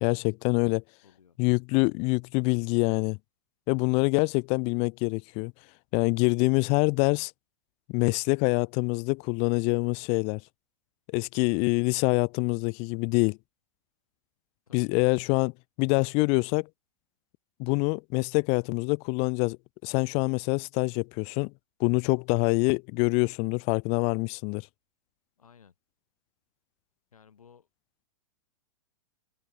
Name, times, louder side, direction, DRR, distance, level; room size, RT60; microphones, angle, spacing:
voice 1, 0.0-0.8 1.4-3.2 3.7-5.5 5.9-7.3 7.9-10.4 11.1-13.4 14.7-15.5 15.8-16.7 17.6-19.6 19.8-21.5 21.8-24.6, left 34 dB, 35° left, 0.4 m, -25 dB
voice 2, 1.0-1.4 14.7-15.1 25.4-25.7 27.1-27.7, left 7 dB, 90° left, 4.9 m, -57 dB
hypercardioid pair, 120°, 18 cm